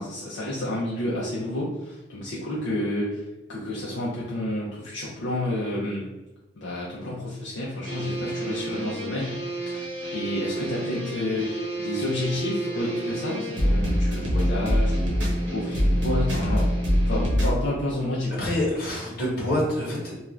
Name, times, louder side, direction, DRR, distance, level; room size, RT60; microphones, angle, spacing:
voice 1, 0.0-3.2 3.5-6.1 6.6-16.7 17.1-18.5, left 1 dB, 70° left, -6 dB, 0.5 m, -30 dB
sound 1, 7.8-17.6, equal, 70° right, 0.8 m, -26 dB
voice 2, 18.4-20.2, left 1 dB, 50° left, -6 dB, 1.1 m, -26 dB
2.5 x 2.3 x 3.1 m, 1.1 s
head